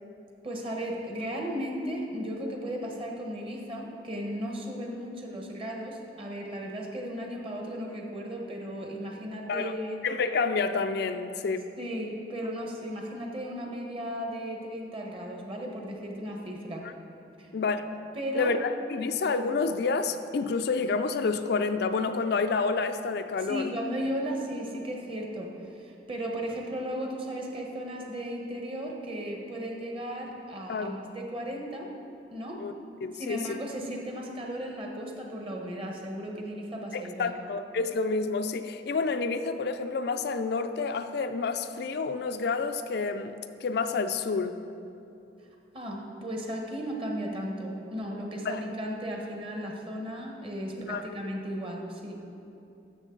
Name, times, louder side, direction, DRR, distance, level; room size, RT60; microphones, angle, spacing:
voice 1, 0.4-10.0 11.8-16.9 17.4-17.5 18.1-18.5 23.5-31.9 32.3-32.6 33.1-37.4 45.7-52.2, equal, 30° right, 0 dB, 1.2 m, -35 dB
voice 2, 10.0-11.7 16.8-16.9 17.5-17.9 18.3-23.7 30.7-30.9 32.6-32.7 33.0-33.6 36.9-43.3 43.6-44.6 48.5-48.6 50.9-51.1, left 4 dB, 65° left, 9 dB, 0.4 m, -29 dB
12.5 x 6.7 x 3.8 m, 2.7 s
head